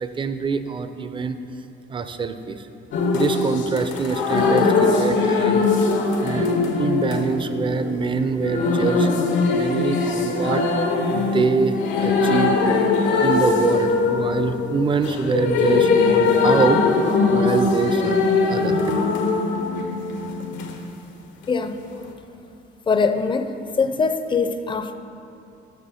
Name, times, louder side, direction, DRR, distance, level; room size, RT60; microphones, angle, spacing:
voice 1, 0.0-1.4 1.9-2.7 3.1-5.9 6.2-6.5 6.8-9.1 9.5-12.6 13.2-16.8 17.3-18.2 18.5-18.8, right 5 dB, 25° right, 9 dB, 0.5 m, -24 dB
sound 1, 2.9-20.7 22.0-22.1, left 4 dB, 85° left, 0.9 m, -21 dB
voice 2, 22.9-23.5 23.8-24.9, left 5 dB, 25° left, 9 dB, 0.5 m, -22 dB
6.9 x 6.4 x 5.6 m, 2.6 s
cardioid pair, 105°, 19 cm